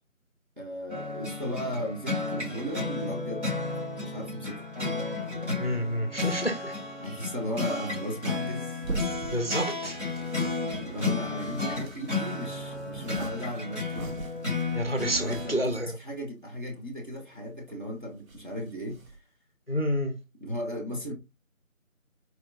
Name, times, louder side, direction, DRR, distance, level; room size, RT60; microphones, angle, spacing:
voice 1, 0.6-3.5 4.0-4.7 7.0-8.8 10.8-13.8 15.1-19.0 20.4-21.1, equal, 35° right, 1.0 m, -36 dB
sound 1, 0.9-15.6, left 3 dB, 55° right, 2.4 m, -33 dB
voice 2, 5.6-6.8 9.3-10.0 14.7-15.9 19.7-20.1, equal, 45° left, 0.5 m, -29 dB
sound 2, 7.4-15.8 16.4-16.5 16.8-17.8 18.0-19.2, right 3 dB, 75° right, 0.9 m, -42 dB
4.3 x 2.7 x 2.4 m
figure-of-eight pair, 175°, 41 cm